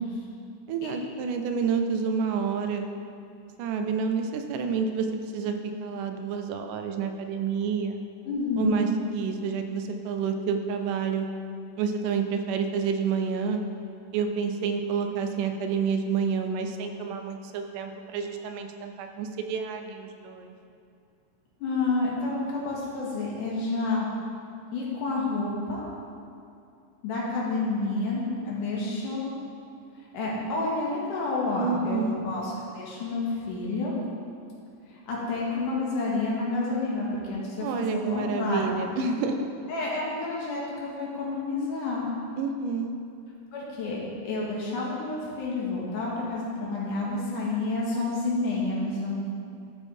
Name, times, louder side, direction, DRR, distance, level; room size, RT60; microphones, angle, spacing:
voice 1, 0.7-2.9 3.6-5.1 5.3-8.0 8.6-11.3 11.8-13.6 14.1-20.5 31.6-32.2 37.6-39.5 42.4-42.9, right 5 dB, 85° right, 5 dB, 2.2 m, -29 dB
voice 2, 8.2-8.8 21.6-24.1 24.7-25.9 27.0-29.3 30.1-34.0 34.9-38.6 39.7-42.1 43.5-44.0 44.2-49.1, left 3 dB, 80° left, -5 dB, 3.1 m, -29 dB
13.0 x 4.6 x 4.4 m, 2.5 s
omnidirectional pair, 3.6 m